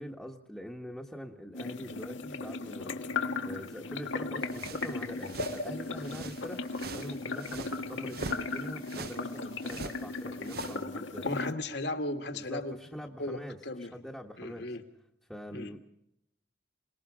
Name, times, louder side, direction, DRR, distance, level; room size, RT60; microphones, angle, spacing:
voice 1, 0.0-6.6 6.9-11.2 12.3-13.6 13.9-14.7 15.3-15.8, equal, ahead, -2 dB, 1.3 m, -44 dB
sound 1, 1.5-11.5, left 3 dB, 90° left, 1.7 m, -36 dB
sound 2, 4.5-10.8, right 4 dB, 55° right, 0.8 m, -44 dB
voice 2, 11.2-12.8 13.2-13.9 14.4-14.8 15.5-15.7, left 1 dB, 65° left, 6 dB, 2.0 m, -36 dB
27.0 x 19.5 x 5.0 m, 0.78 s
head